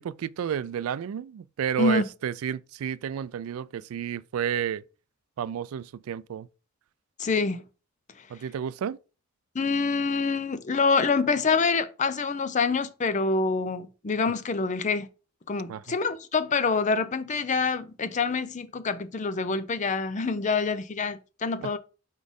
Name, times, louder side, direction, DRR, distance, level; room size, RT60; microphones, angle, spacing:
voice 1, 0.0-4.8 5.4-6.5 8.3-9.0 15.7-15.8 21.6-21.7, right 8 dB, 80° right, 0.3 m, -31 dB
voice 2, 7.2-7.6 9.5-15.1 15.5-21.8, left 4 dB, 35° left, 0.5 m, -26 dB
4.8 x 4.1 x 5.2 m
head